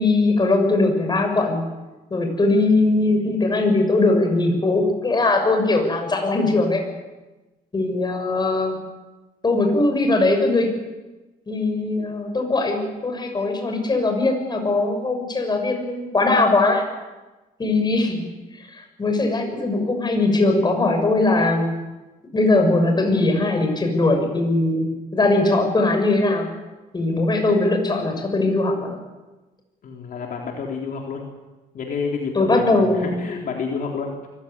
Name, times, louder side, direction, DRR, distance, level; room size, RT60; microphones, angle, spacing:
voice 1, 0.0-1.6 2.1-6.8 7.7-8.8 9.4-10.7 11.5-16.8 17.6-18.2 18.6-21.7 22.3-26.5 26.9-29.0 32.3-33.1, left 2 dB, 25° left, 4 dB, 6.4 m, -20 dB
voice 2, 29.8-31.3 31.7-34.3, left 5 dB, 60° left, 0 dB, 3.9 m, -29 dB
24.0 x 16.0 x 9.9 m, 1.1 s
cardioid pair, 95°, 16 cm